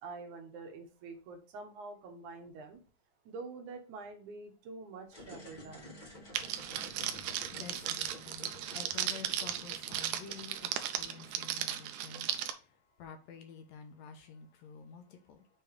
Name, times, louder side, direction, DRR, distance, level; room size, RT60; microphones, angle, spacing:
voice 1, 0.0-2.8 3.3-6.0, right 3 dB, 70° right, 2.6 m, -46 dB
sound 1, 5.1-10.9, left 1 dB, 30° left, 0.9 m, -52 dB
Crackle, 6.3-12.5, right 11 dB, 90° right, 2.2 m, -36 dB
voice 2, 6.6-15.5, left 6 dB, 70° left, 1.9 m, -50 dB
6.9 x 3.3 x 4.8 m
omnidirectional pair, 3.7 m